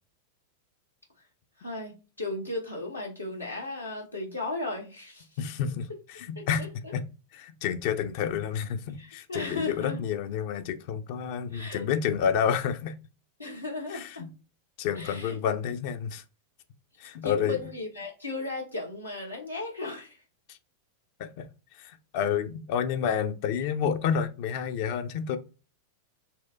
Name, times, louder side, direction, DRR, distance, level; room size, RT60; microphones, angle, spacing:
voice 1, 1.6-5.4 6.4-6.9 9.0-10.0 11.5-11.8 13.4-14.3 14.9-15.4 17.2-20.2, left 2 dB, 85° left, 0.8 m, -36 dB
voice 2, 5.4-6.6 6.9-7.0 7.3-12.9 13.9-14.3 14.8-16.2 17.0-17.6 20.5-20.6 21.2-21.5 21.8-25.4, left 8 dB, 45° left, 0.4 m, -29 dB
4.2 x 2.1 x 2.3 m
figure-of-eight pair, 90°, 0 cm